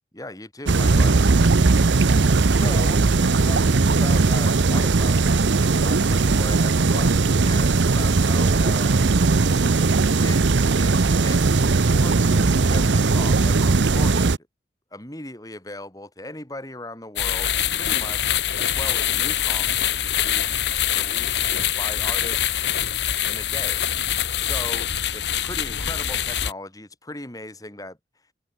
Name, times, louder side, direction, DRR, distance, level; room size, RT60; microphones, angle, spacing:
voice 1, 0.1-1.3 2.5-5.3 5.8-9.0 10.2-10.4 10.7-14.4 14.9-20.5 20.9-21.5 21.8-22.6 23.3-23.8 24.4-28.0, left 2 dB, 20° left, 3.7 m, -38 dB
sound 1, 0.7-14.4, right 3 dB, 85° right, 0.7 m, -18 dB
sound 2, 17.2-26.5, left 10 dB, 75° left, 1.6 m, -24 dB
head